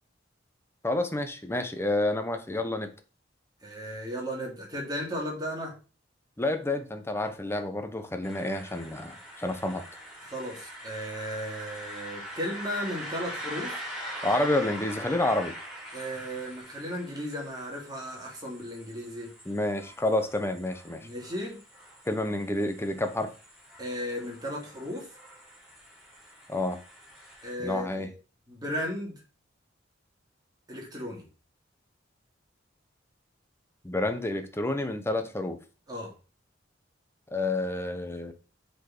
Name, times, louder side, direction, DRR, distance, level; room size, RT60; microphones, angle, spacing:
voice 1, 0.8-2.9 6.4-9.8 14.2-15.5 19.5-21.1 22.1-23.3 26.5-26.8 27.6-28.1 33.8-35.6 37.3-38.3, left 2 dB, 15° left, 0.9 m, -29 dB
voice 2, 3.6-5.7 10.3-13.8 15.9-19.3 21.0-21.6 23.8-25.1 27.4-28.1 28.5-29.2 30.7-31.2 35.9-36.1, equal, 20° right, 2.8 m, -35 dB
sound 1, 8.2-27.5, equal, ahead, 3.3 m, -43 dB
7.4 x 4.6 x 5.0 m
head